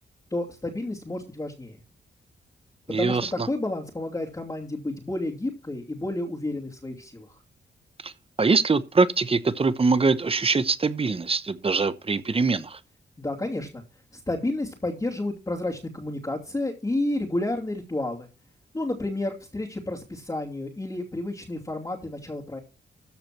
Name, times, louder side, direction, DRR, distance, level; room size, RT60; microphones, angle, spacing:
voice 1, 0.3-1.8 3.0-3.2 3.5-7.4 13.2-13.8 14.1-18.3 18.7-22.6, left 2 dB, 20° left, 2.8 m, -31 dB
voice 2, 2.9-3.5 8.0-8.1 8.4-12.8, right 4 dB, 30° right, 1.0 m, -23 dB
14.0 x 5.0 x 6.0 m
cardioid pair, 85°, 19 cm